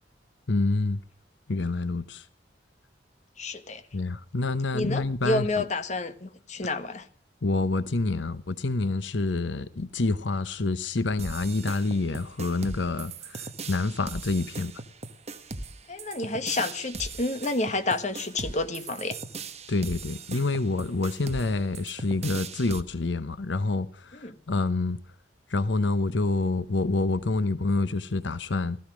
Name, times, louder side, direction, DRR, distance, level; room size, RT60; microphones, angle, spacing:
voice 1, 0.5-1.0 1.5-2.2 3.9-5.6 7.4-14.7 19.7-25.0 25.5-28.8, left 3 dB, 85° left, 0.9 m, -27 dB
voice 2, 3.4-3.8 4.7-7.1 15.9-19.2 24.1-24.4, left 2 dB, 40° left, 1.5 m, -29 dB
sound 1, 11.2-22.8, right 3 dB, 35° right, 1.2 m, -39 dB
16.5 x 14.0 x 6.2 m
head